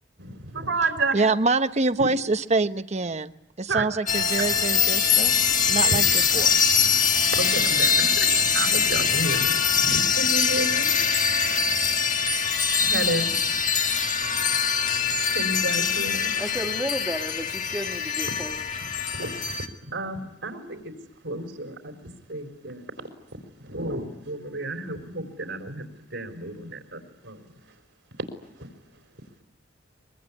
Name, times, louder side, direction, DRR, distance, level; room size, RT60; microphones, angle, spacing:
voice 1, 0.2-1.1 3.7-3.8 7.3-9.5 9.9-10.9 12.8-13.4 15.3-16.3 19.1-19.4 19.9-20.8 21.2-21.9 22.3-22.8 23.6-25.8 26.1-27.4, right 2 dB, 80° right, 4 dB, 4.0 m, -31 dB
voice 2, 1.1-3.3 3.6-5.3 5.7-6.6, right 3 dB, 40° right, 10 dB, 1.0 m, -25 dB
sound 1, 4.1-19.7, left 6 dB, 45° left, 2.0 m, -23 dB
voice 3, 16.4-18.6, equal, 10° right, -4 dB, 2.1 m, -32 dB
24.0 x 23.0 x 9.8 m, 0.81 s
head